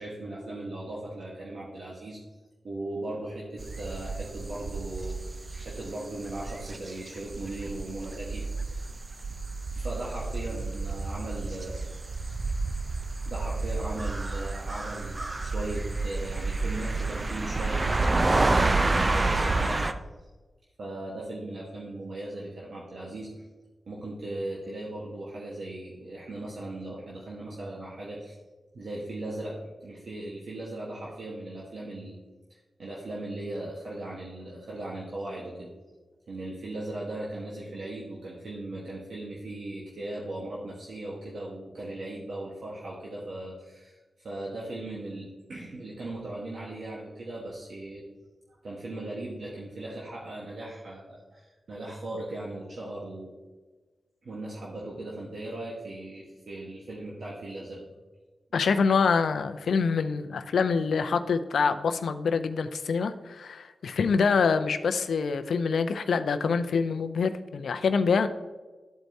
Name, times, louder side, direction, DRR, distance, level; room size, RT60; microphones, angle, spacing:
voice 1, 0.0-2.2 2.6-8.9 9.8-11.8 13.2-19.9 20.8-23.3 23.9-28.3 28.7-32.2 32.5-35.7 36.3-44.0 44.2-48.0 48.6-53.3 54.2-57.9, right 1 dB, 70° right, -4 dB, 1.3 m, -38 dB
sound 1, 3.6-19.9, right 3 dB, 40° right, 0.6 m, -29 dB
voice 2, 58.5-68.3, left 5 dB, 80° left, 9 dB, 0.5 m, -25 dB
12.5 x 4.5 x 2.7 m, 1.3 s
cardioid pair, 45°, 0 cm